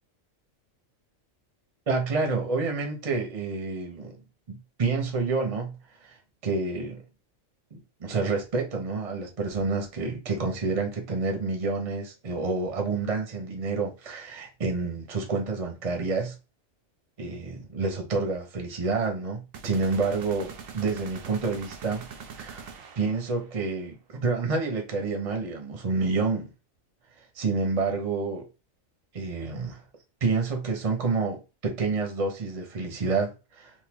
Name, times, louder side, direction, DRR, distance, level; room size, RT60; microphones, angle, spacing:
voice 1, 1.9-4.1 4.5-5.7 6.0-6.1 6.4-7.0 7.7-16.3 17.2-22.0 22.4-22.6 23.0-26.5 27.4-28.5 29.1-29.8 30.2-33.7, right 4 dB, 30° right, 0.8 m, -28 dB
sound 1, 19.5-23.5, right 6 dB, 80° right, 1.0 m, -43 dB
3.7 x 2.6 x 2.9 m
omnidirectional pair, 1.4 m